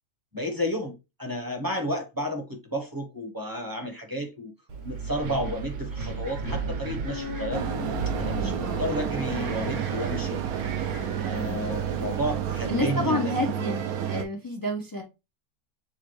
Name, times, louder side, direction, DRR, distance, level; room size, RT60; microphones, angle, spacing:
voice 1, 0.3-4.5 4.8-7.7 8.1-10.4 11.2-13.4, equal, 20° right, 0.7 m, -32 dB
Wind, 4.7-12.8, right 5 dB, 60° right, 1.2 m, -35 dB
Bass guitar, 7.1-10.7, left 9 dB, 70° left, 1.5 m, -42 dB
sound 1, 7.5-14.2, right 9 dB, 80° right, 1.2 m, -30 dB
voice 2, 8.4-9.0 11.5-11.9 12.7-15.0, left 2 dB, 35° left, 0.3 m, -30 dB
6.5 x 2.2 x 3.1 m
omnidirectional pair, 1.5 m